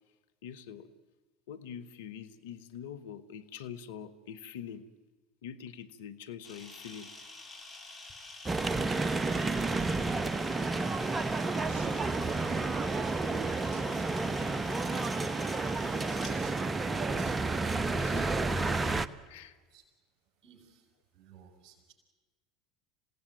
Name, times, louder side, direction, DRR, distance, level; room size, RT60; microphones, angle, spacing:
voice 1, 0.4-0.9 1.5-4.9 5.4-7.2 18.0-18.4 19.3-19.6, left 8 dB, 75° left, 10 dB, 1.1 m, -44 dB
Camera, 6.4-16.3, left 2 dB, 15° left, 7.6 m, -48 dB
sound 1, 8.5-19.1, right 3 dB, 20° right, 0.9 m, -31 dB
sound 2, 9.8-14.6, equal, ahead, 7.7 m, -55 dB
voice 2, 9.9-10.8 11.6-12.3 15.8-17.5 19.7-19.8 20.4-21.9, right 8 dB, 50° right, 4 dB, 5.6 m, -56 dB
27.5 x 17.0 x 9.1 m, 1.3 s
hypercardioid pair, 70°, 0 cm